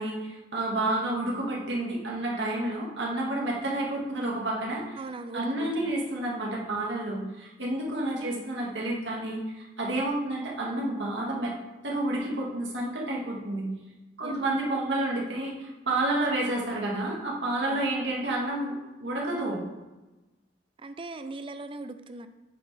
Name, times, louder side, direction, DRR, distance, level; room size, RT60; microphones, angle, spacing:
voice 1, 0.0-5.0 5.3-11.5 11.8-13.7 14.2-19.6, right 1 dB, 85° right, -3 dB, 1.8 m, -30 dB
voice 2, 5.0-5.9 7.9-8.5 9.9-10.1 14.2-14.6 17.6-17.8 20.8-22.3, right 2 dB, 30° right, 10 dB, 0.5 m, -40 dB
8.4 x 5.8 x 3.4 m, 1.1 s
head